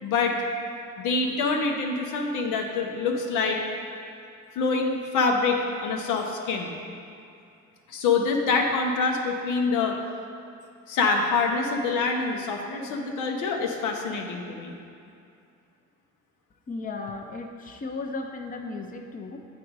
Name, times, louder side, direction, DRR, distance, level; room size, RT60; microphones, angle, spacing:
voice 1, 0.0-0.4 1.0-3.6 4.6-6.7 7.9-10.0 10.9-14.8, left 4 dB, 90° left, 2 dB, 0.8 m, -25 dB
voice 2, 16.7-19.5, left 3 dB, 30° left, 3 dB, 0.6 m, -35 dB
8.4 x 3.8 x 4.7 m, 2.6 s
cardioid pair, 90°, 30 cm